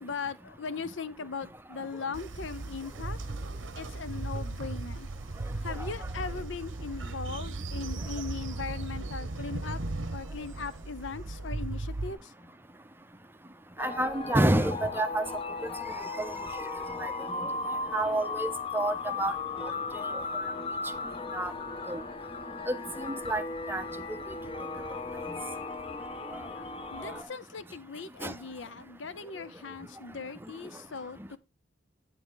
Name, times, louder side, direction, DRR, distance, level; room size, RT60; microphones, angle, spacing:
voice 1, 0.0-3.2 3.8-5.1 5.6-9.8 10.1-12.3 26.5-31.4, left 5 dB, 75° left, 0.7 m, -39 dB
Train, 2.1-12.1, right 2 dB, 85° right, 1.0 m, -37 dB
sound 1, 13.8-27.2, left 3 dB, 30° left, 0.7 m, -36 dB
voice 2, 13.8-15.2 15.6-16.3 17.0-17.1 17.4-17.5 17.9-19.3 21.3-21.5 21.9-22.0 22.7-23.4 23.7-23.8 25.3-25.4 28.2-28.3, right 1 dB, 10° right, 0.5 m, -29 dB
8.8 x 7.0 x 3.8 m
head